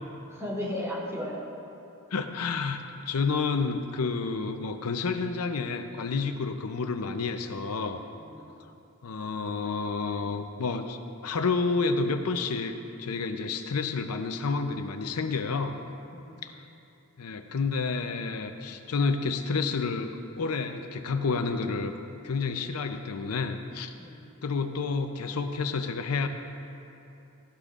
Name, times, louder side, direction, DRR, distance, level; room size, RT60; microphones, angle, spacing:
voice 1, 0.3-1.4 8.2-8.5 16.1-16.4 24.0-24.3, left 1 dB, 15° right, -9 dB, 2.8 m, -35 dB
voice 2, 2.1-8.0 9.0-15.7 16.4-16.5 17.2-22.0 22.2-23.9 24.4-26.3, left 4 dB, 85° left, 7 dB, 0.6 m, -30 dB
16.5 x 11.5 x 2.5 m, 2.8 s
head